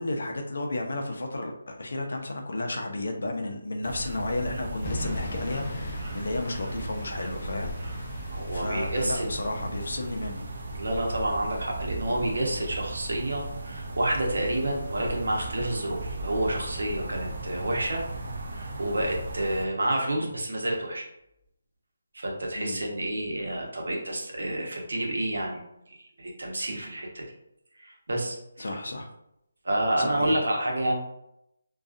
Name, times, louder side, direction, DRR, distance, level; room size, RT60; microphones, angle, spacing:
voice 1, 0.0-8.2 8.5-10.5 20.1-20.3 22.6-22.8 28.6-29.1 30.0-30.4, left 2 dB, 70° left, 3 dB, 0.5 m, -33 dB
sound 1, 3.8-19.7, right 2 dB, 50° right, 0.4 m, -36 dB
sound 2, 4.8-10.9, left 2 dB, 25° left, 0.5 m, -40 dB
voice 2, 8.3-9.3 10.8-18.0 18.5-21.1 22.1-25.6 25.9-27.2 27.8-28.7 29.6-31.0, right 1 dB, 80° right, 0 dB, 0.8 m, -29 dB
2.6 x 2.3 x 2.4 m, 0.80 s
hypercardioid pair, 170°, 0 cm